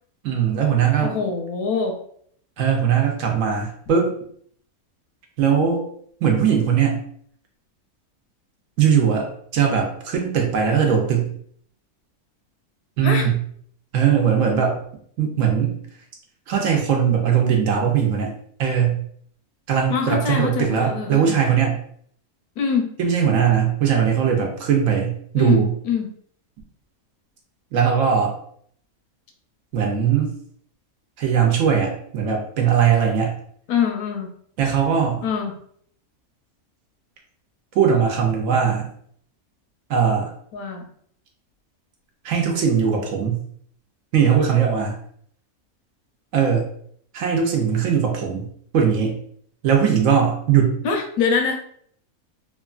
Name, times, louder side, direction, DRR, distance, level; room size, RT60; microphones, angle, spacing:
voice 1, 0.2-1.2 2.6-4.1 5.4-5.8 6.2-7.0 8.8-11.3 13.0-13.4 13.9-14.8 15.2-15.8 16.5-18.3 18.6-19.0 19.7-21.8 23.0-25.7 27.7-28.4 29.7-30.3 31.2-33.4 34.6-35.2 37.7-38.9 39.9-40.3 42.2-43.4 44.1-45.0 46.3-46.7 47.1-48.5 48.7-49.2 49.6-50.8, right 7 dB, 70° right, 1 dB, 1.0 m, -20 dB
voice 2, 1.0-2.0 13.0-13.3 19.9-21.4 22.6-22.9 25.3-26.1 33.7-34.3 35.2-35.5 40.5-40.9 50.8-51.6, left 6 dB, 85° left, 3 dB, 1.1 m, -24 dB
3.0 x 2.4 x 2.3 m, 0.62 s
omnidirectional pair, 1.5 m